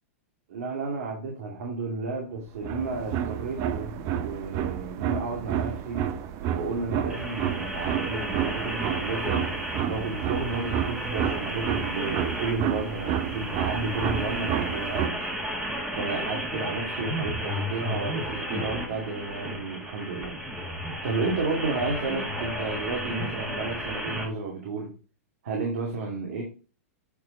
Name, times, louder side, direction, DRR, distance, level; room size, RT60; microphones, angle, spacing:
voice 1, 0.5-6.0 6.5-9.4 9.8-15.3 15.9-20.3 21.0-24.9 25.4-26.4, right 3 dB, 70° right, -1 dB, 2.4 m, -32 dB
sound 1, 2.5-15.1, right 9 dB, 40° right, 0.7 m, -30 dB
sound 2, 7.1-24.2, equal, 10° right, 1.9 m, -33 dB
8.4 x 4.4 x 4.1 m, 0.34 s
hypercardioid pair, 135°, 8 cm